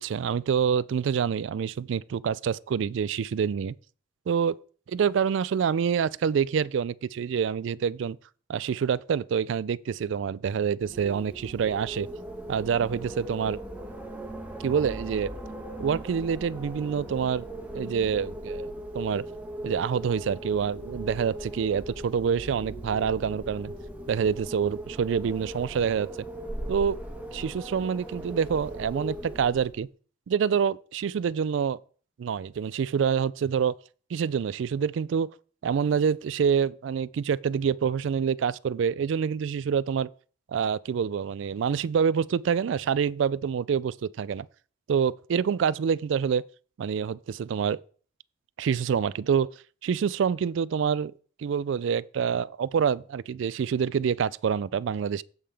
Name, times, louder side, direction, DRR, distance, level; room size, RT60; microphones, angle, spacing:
voice 1, 0.0-3.7 4.3-4.6 4.9-8.2 8.5-12.1 12.5-13.6 14.6-15.3 15.8-17.5 17.7-18.7 18.9-19.3 19.6-23.7 24.1-26.1 26.7-27.0 27.3-29.9 30.3-31.8 32.2-33.8 34.1-35.3 35.6-40.1 40.5-44.5 44.9-46.4 46.8-47.8 48.6-49.5 49.8-51.1 51.4-55.2, right 7 dB, 70° right, 0.3 m, -26 dB
Wind, 10.8-29.8, right 1 dB, 10° right, 1.2 m, -38 dB
15.0 x 5.6 x 3.4 m
head